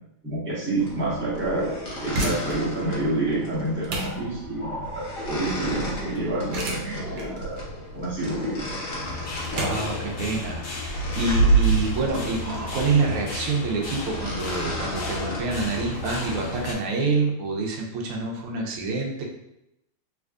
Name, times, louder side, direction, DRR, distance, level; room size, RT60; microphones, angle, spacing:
voice 1, 0.2-1.7 2.0-7.6 7.9-8.6, right 2 dB, 10° right, -9 dB, 0.6 m, -28 dB
sound 1, 0.8-16.6, right 2 dB, 50° left, 1.1 m, -30 dB
sound 2, 1.8-12.6, right 1 dB, 70° right, 1.4 m, -35 dB
sound 3, 9.0-16.7, left 4 dB, 75° left, 0.9 m, -35 dB
voice 2, 9.5-19.2, right 3 dB, 85° right, -1 dB, 1.6 m, -27 dB
3.5 x 3.1 x 2.4 m, 0.86 s
omnidirectional pair, 2.4 m